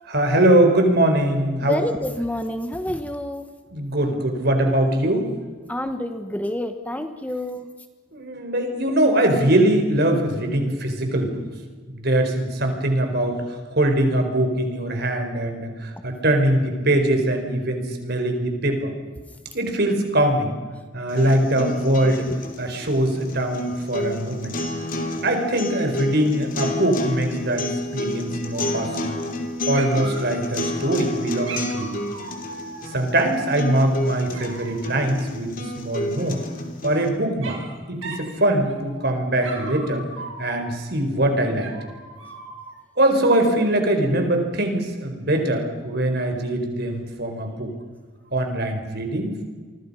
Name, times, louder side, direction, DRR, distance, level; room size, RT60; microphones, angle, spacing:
voice 1, 0.1-1.8 3.7-5.3 8.1-11.4 11.9-18.9 19.5-20.6 20.9-22.3 22.6-24.5 25.2-27.7 27.9-29.2 29.7-32.0 32.9-36.4 36.8-37.6 37.9-40.1 40.4-41.7 43.0-47.7 48.3-49.4, right 1 dB, 55° right, 5 dB, 4.6 m, -22 dB
voice 2, 1.6-3.5 5.7-7.7, left 1 dB, 10° left, 7 dB, 1.1 m, -28 dB
sound 1, 21.1-37.1, left 1 dB, 45° left, 3.2 m, -30 dB
Dog, 28.5-29.5 29.7-31.0 31.5-33.5 34.3-35.0 36.4-37.0 37.4-37.7 38.0-38.3 38.7-39.1 39.4-40.9 41.6-42.8, right 3 dB, 80° right, 5.9 m, -39 dB
29.0 x 24.5 x 5.6 m, 1.4 s
head